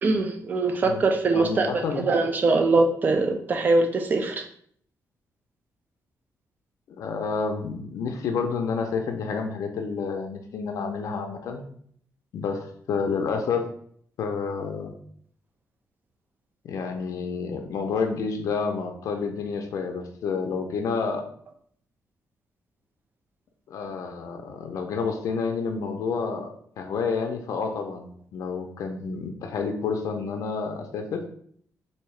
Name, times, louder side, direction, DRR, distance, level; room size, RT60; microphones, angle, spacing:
voice 1, 0.0-4.4, right 3 dB, 30° right, 4 dB, 0.4 m, -22 dB
voice 2, 1.3-2.1 7.0-11.6 12.3-13.6 14.2-14.9 16.6-21.2 23.7-26.5 26.8-31.2, left 5 dB, 70° left, 4 dB, 0.5 m, -29 dB
3.6 x 2.7 x 3.1 m, 0.62 s
wide cardioid pair, 175°, 6 cm